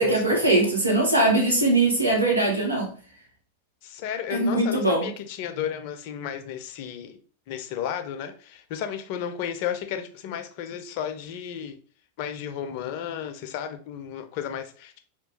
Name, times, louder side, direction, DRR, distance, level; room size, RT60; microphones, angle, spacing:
voice 1, 0.0-2.9 4.3-5.1, right 2 dB, 85° right, -1 dB, 1.2 m, -21 dB
voice 2, 3.8-7.2 7.5-11.8 12.2-15.0, left 9 dB, 45° left, 7 dB, 0.4 m, -33 dB
2.8 x 2.3 x 3.8 m, 0.42 s
figure-of-eight pair, 90°, 0 cm